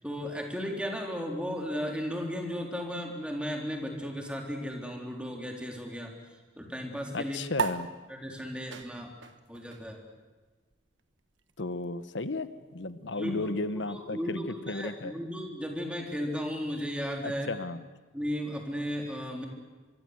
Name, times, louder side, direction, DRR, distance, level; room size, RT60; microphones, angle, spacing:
voice 1, 0.0-6.1 6.6-7.4 8.1-9.1 9.5-10.0 13.1-17.5 18.1-19.5, equal, 5° right, 1 dB, 3.7 m, -35 dB
voice 2, 7.1-7.9 11.6-15.1 17.2-17.9, left 2 dB, 75° left, 13 dB, 1.1 m, -34 dB
sound 1, 7.5-14.4, right 5 dB, 80° right, 1.4 m, -40 dB
25.0 x 24.0 x 8.0 m, 1.3 s
head